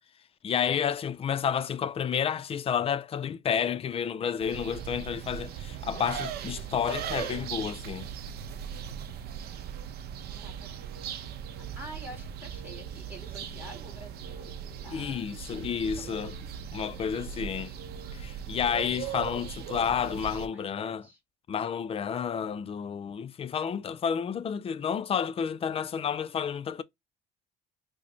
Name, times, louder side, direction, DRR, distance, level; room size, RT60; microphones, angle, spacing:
voice 1, 0.4-8.1 14.9-16.3 16.7-17.7 18.1-21.1 21.5-26.8, left 7 dB, 35° left, 0.4 m, -30 dB
sound 1, 4.4-20.5, right 8 dB, 70° right, 0.6 m, -39 dB
voice 2, 10.3-10.7 11.7-14.5 14.8-15.2 15.5-16.9 19.0-19.3 19.6-21.2, right 1 dB, 10° right, 1.7 m, -49 dB
4.7 x 2.1 x 3.0 m
cardioid pair, 110°, 17 cm